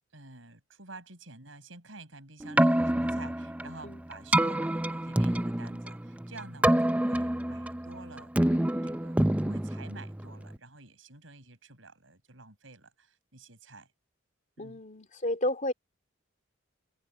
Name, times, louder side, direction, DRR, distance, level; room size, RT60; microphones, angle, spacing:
voice 1, 0.1-8.3 8.8-13.9 14.6-14.8, right 3 dB, 80° right, 5.9 m, -49 dB
Keyboard (musical), 2.4-10.6, right 1 dB, 5° right, 0.4 m, -27 dB
voice 2, 14.6-15.7, left 1 dB, 40° left, 3.0 m, -31 dB
head